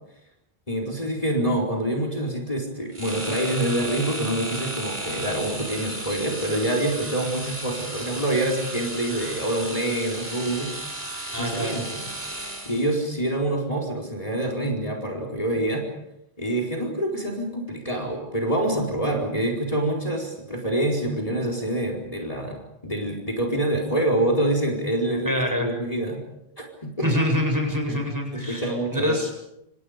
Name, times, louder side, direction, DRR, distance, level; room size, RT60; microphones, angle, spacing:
voice 1, 0.7-10.7 11.4-12.1 12.6-15.8 16.4-26.2 26.6-27.1 27.9-28.0 28.3-29.2, right 1 dB, 35° left, 0 dB, 4.7 m, -26 dB
sound 1, 2.9-13.0, right 1 dB, 50° right, 4.6 m, -34 dB
voice 2, 11.3-11.8 25.2-25.7 27.0-29.3, left 1 dB, 20° right, 1 dB, 7.9 m, -25 dB
29.0 x 27.5 x 5.2 m, 0.84 s
omnidirectional pair, 1.1 m